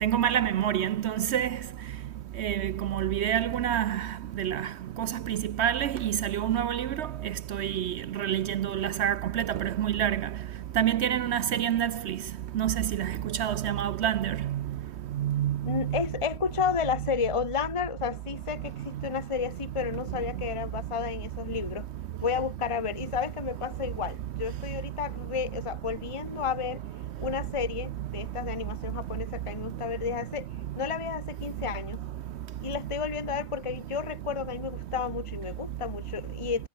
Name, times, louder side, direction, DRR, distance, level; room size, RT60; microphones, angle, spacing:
voice 1, 0.0-1.6 2.4-4.1 4.4-4.7 5.0-7.1 7.5-10.2 10.8-12.2 12.5-13.1 13.4-14.6 15.2-16.0, right 10 dB, 65° right, 0.8 m, -27 dB
voice 2, 15.6-21.9 22.2-26.8 27.2-30.5 30.8-32.0 32.6-36.7, left 6 dB, 25° left, 1.1 m, -32 dB
omnidirectional pair, 1.4 m